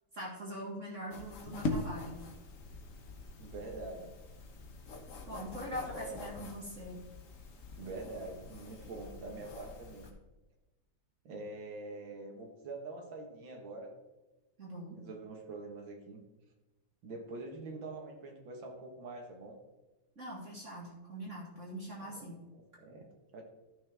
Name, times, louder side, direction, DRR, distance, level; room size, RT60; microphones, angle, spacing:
voice 1, 0.1-2.2 5.3-7.0 14.6-15.0 20.2-22.4, equal, 40° right, -4 dB, 2.3 m, -43 dB
sound 1, 1.1-10.1, left 2 dB, 50° left, 1.3 m, -43 dB
voice 2, 3.4-4.2 5.9-6.3 7.8-10.1 11.2-14.0 15.0-16.2 17.0-19.6 22.0-23.1 23.3-23.4, right 2 dB, 85° right, 1 dB, 2.3 m, -45 dB
13.0 x 6.4 x 3.5 m, 1.1 s
omnidirectional pair, 2.1 m